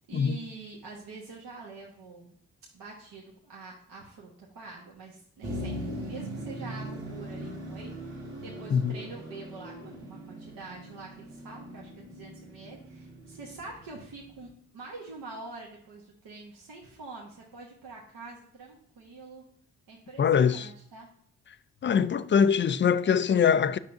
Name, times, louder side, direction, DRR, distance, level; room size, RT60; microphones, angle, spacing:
voice 1, 0.1-2.3 2.7-19.4 19.9-21.1, right 3 dB, 70° right, 1.3 m, -45 dB
Motor vehicle (road), 5.4-14.4, right 1 dB, 90° right, 2.0 m, -40 dB
voice 2, 20.2-20.7 21.8-23.8, left 7 dB, 35° left, 0.4 m, -23 dB
7.9 x 5.7 x 2.6 m
supercardioid pair, 45°, 37 cm